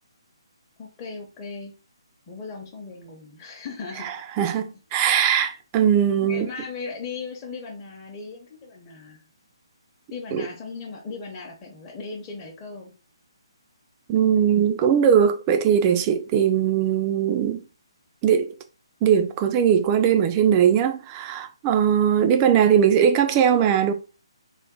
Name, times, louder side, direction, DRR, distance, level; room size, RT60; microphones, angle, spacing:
voice 1, 0.8-1.7 2.3-4.1 6.2-9.2 10.1-12.9, left 4 dB, 25° left, 0.9 m, -37 dB
voice 2, 4.0-6.5 10.3-10.5 14.1-17.6 18.2-18.5 19.0-23.9, right 8 dB, 25° right, 0.4 m, -20 dB
3.5 x 2.6 x 3.7 m
figure-of-eight pair, 145°, 3 cm